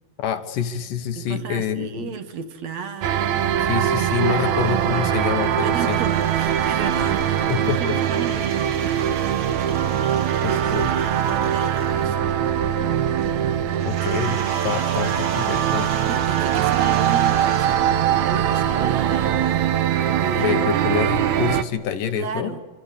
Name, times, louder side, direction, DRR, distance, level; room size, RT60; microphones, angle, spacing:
voice 1, 0.2-2.1 3.6-6.0 7.5-8.0 10.4-10.9 13.9-16.0 20.4-22.6, left 8 dB, 65° left, 9 dB, 2.3 m, -27 dB
voice 2, 1.2-4.4 4.7-5.2 5.6-10.0 10.4-12.3 14.1-14.4 16.1-19.8 20.1-20.8 22.2-22.6, right 6 dB, 55° right, 9 dB, 2.2 m, -33 dB
sound 1, 3.0-21.6, right 10 dB, 85° right, 1.6 m, -22 dB
sound 2, 4.6-12.3 13.7-18.2, right 3 dB, 35° right, 1.4 m, -41 dB
26.5 x 25.5 x 8.5 m, 1.3 s
omnidirectional pair, 4.9 m